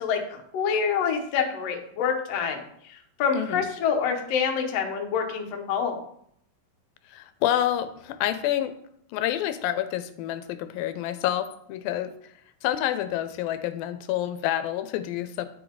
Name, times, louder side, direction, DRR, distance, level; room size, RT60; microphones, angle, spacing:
voice 1, 0.0-5.9, left 6 dB, 65° left, 2 dB, 1.7 m, -27 dB
voice 2, 3.3-3.7 7.1-8.7 9.1-12.3 12.6-15.5, left 12 dB, 85° left, 11 dB, 2.3 m, -28 dB
10.0 x 3.9 x 4.6 m, 0.69 s
omnidirectional pair, 4.1 m